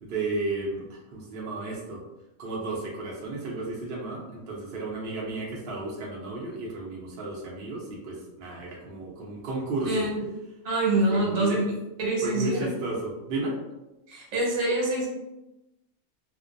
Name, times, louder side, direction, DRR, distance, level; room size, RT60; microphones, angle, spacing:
voice 1, 0.0-2.0 2.4-10.1 10.9-11.6 12.2-13.6, right 2 dB, 55° right, -3 dB, 0.6 m, -33 dB
voice 2, 9.8-10.2 10.6-11.6 12.0-12.6 14.1-15.1, right 2 dB, 75° right, -3 dB, 1.2 m, -25 dB
2.5 x 2.2 x 2.5 m, 0.97 s
omnidirectional pair, 1.5 m